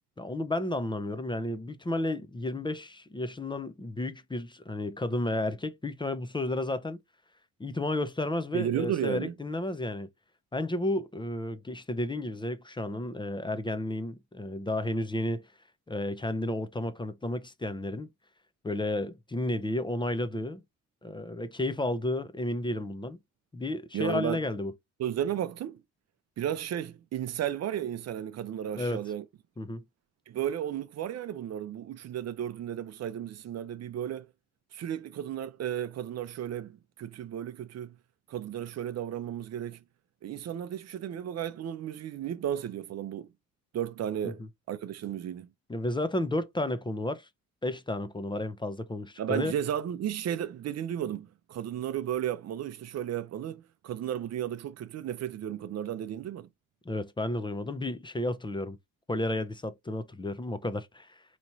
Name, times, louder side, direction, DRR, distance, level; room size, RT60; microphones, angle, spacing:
voice 1, 0.2-7.0 7.6-10.1 10.5-15.4 15.9-18.1 18.6-20.6 21.0-23.2 23.5-24.7 28.7-29.0 29.6-29.8 45.7-47.3 47.6-49.5 56.9-58.8 59.1-61.2, left 1 dB, 15° left, 0.6 m, -32 dB
voice 2, 8.5-9.3 23.9-24.4 25.0-25.8 26.4-29.2 30.3-34.3 34.7-38.0 38.3-39.8 40.2-43.3 43.7-45.5 49.2-56.5, right 10 dB, 55° right, 0.6 m, -34 dB
4.3 x 3.0 x 2.6 m
cardioid pair, 90°, 30 cm